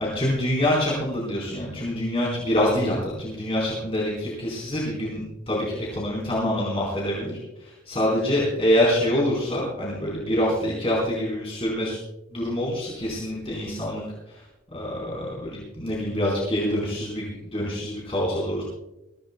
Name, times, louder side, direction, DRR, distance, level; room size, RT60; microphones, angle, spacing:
voice 1, 0.0-12.0 12.3-14.0 14.3-14.4 14.7-18.6, left 1 dB, 25° left, -5 dB, 4.2 m, -26 dB
23.0 x 16.5 x 2.3 m, 0.92 s
head